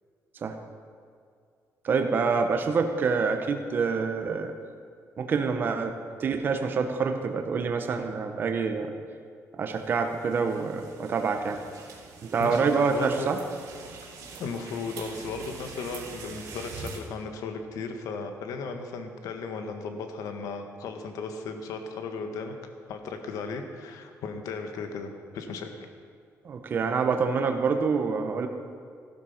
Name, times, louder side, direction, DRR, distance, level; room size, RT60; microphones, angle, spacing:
voice 1, 1.8-4.5 5.2-8.9 9.6-11.6 12.2-13.4 26.4-28.5, right 5 dB, 35° right, 5 dB, 1.0 m, -26 dB
sound 1, 9.8-17.0, right 4 dB, 85° right, 2.9 m, -44 dB
voice 2, 12.4-13.4 14.4-22.6 22.9-25.9, left 4 dB, 85° left, 6 dB, 1.6 m, -36 dB
15.0 x 12.5 x 5.8 m, 2.3 s
cardioid pair, 180°, 6 cm